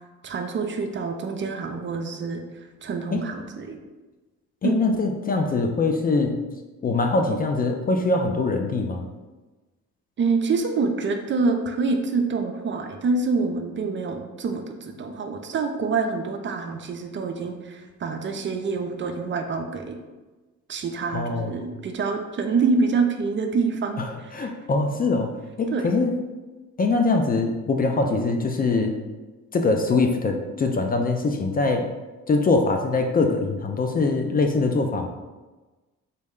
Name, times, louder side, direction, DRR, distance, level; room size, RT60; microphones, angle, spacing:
voice 1, 0.2-2.4 2.8-3.8 4.6-4.7 10.2-20.0 20.7-24.5 25.7-25.9, right 4 dB, 40° right, 5 dB, 0.4 m, -26 dB
voice 2, 4.6-6.4 6.8-9.1 21.1-21.5 24.0-24.1 24.3-25.3 25.6-26.2 26.8-28.9 29.5-31.8 32.3-35.1, left 3 dB, 30° left, 4 dB, 0.3 m, -23 dB
3.9 x 2.1 x 3.6 m, 1.2 s
cardioid pair, 90°, 30 cm